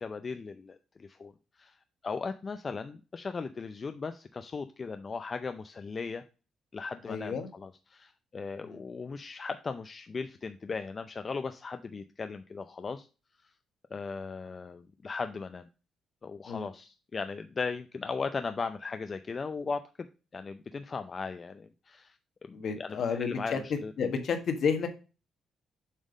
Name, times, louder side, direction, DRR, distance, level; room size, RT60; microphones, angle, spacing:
voice 1, 0.0-1.8 2.0-6.2 6.7-13.1 13.9-15.7 16.2-20.1 20.3-22.2 22.4-23.9, left 4 dB, 35° left, 9 dB, 0.5 m, -37 dB
voice 2, 7.1-7.5 8.6-8.8 16.5-16.6 22.5-23.6 24.0-24.9, left 6 dB, 65° left, 7 dB, 1.5 m, -31 dB
7.4 x 3.5 x 5.2 m, 0.32 s
cardioid pair, 90°, 0 cm